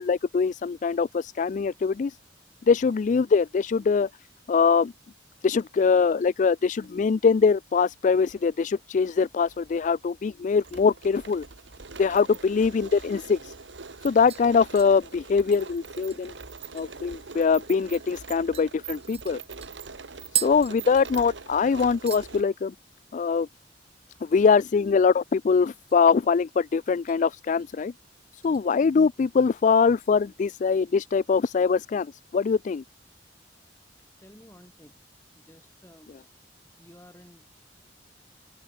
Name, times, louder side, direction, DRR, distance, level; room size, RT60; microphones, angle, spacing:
voice 1, 0.0-2.2 2.7-4.1 4.5-4.9 5.4-11.4 12.0-13.5 14.0-16.3 16.7-19.4 20.3-22.7 23.1-23.5 24.2-27.9 28.3-32.8, left 5 dB, 45° left, 0.3 m, -23 dB
sound 1, 6.6-6.9 7.9-8.7 8.9-9.0 9.5-22.4, right 5 dB, 85° right, 1.3 m, -43 dB
sound 2, 14.3-17.1 17.5-17.6 17.9-18.1 18.5-21.5 21.8-22.3 22.6-23.0 23.3-23.4 25.5-26.1 26.5-27.2 27.6-27.9 28.4-29.3 29.7-29.8, right 10 dB, 35° right, 2.5 m, -38 dB
voice 2, 34.2-35.0 35.4-36.1 36.8-37.4, equal, 15° left, 7.3 m, -52 dB
head